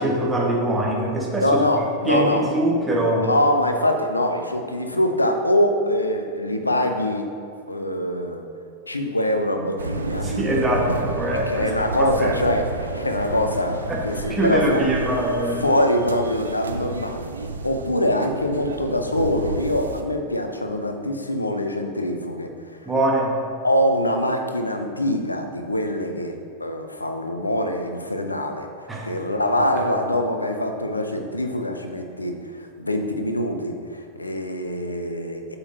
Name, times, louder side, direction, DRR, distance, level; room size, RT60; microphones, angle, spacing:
voice 1, 0.0-1.6 2.0-3.3 10.2-11.7 12.0-12.4 13.9-14.0 14.3-15.6 22.8-23.4 28.9-29.1, right 1 dB, 10° right, -3 dB, 1.7 m, -23 dB
voice 2, 1.4-2.5 3.1-7.3 7.7-8.4 8.9-10.3 11.3-14.8 15.6-17.3 17.6-22.5 22.8-22.9 23.6-28.7 29.0-35.6, left 1 dB, 85° left, 5 dB, 0.7 m, -24 dB
sound 1, 9.8-20.0, right 3 dB, 75° right, 0.5 m, -31 dB
9.5 x 6.8 x 2.9 m, 2.5 s
figure-of-eight pair, 90°, 0 cm